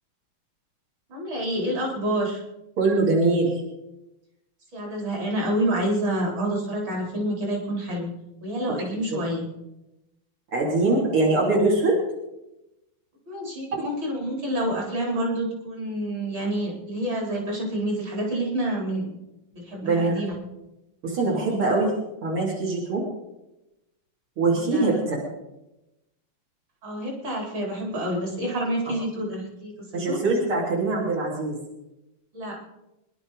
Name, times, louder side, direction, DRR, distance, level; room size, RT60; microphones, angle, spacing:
voice 1, 1.1-2.4 4.7-8.1 8.4-9.5 13.3-19.1 19.5-20.3 24.5-25.0 26.8-30.2 32.3-32.6, right 1 dB, 60° right, -1 dB, 4.8 m, -28 dB
voice 2, 2.8-3.5 10.5-12.0 13.7-13.8 19.8-20.1 21.0-21.9 22.2-23.0 24.4-25.2 29.9-31.6, right 3 dB, 90° right, -4 dB, 4.1 m, -22 dB
24.5 x 11.5 x 4.9 m, 0.95 s
omnidirectional pair, 2.3 m